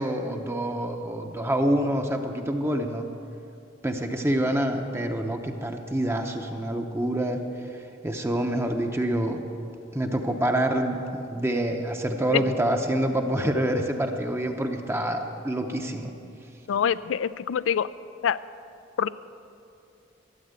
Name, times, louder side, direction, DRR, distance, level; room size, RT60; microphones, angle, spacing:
voice 1, 0.0-3.0 3.8-7.4 8.0-9.4 9.9-16.1, right 1 dB, 15° right, 4 dB, 0.7 m, -26 dB
voice 2, 16.7-17.9 18.2-18.4 19.0-19.1, left 8 dB, 75° left, 17 dB, 0.4 m, -25 dB
13.0 x 8.6 x 8.1 m, 2.6 s
head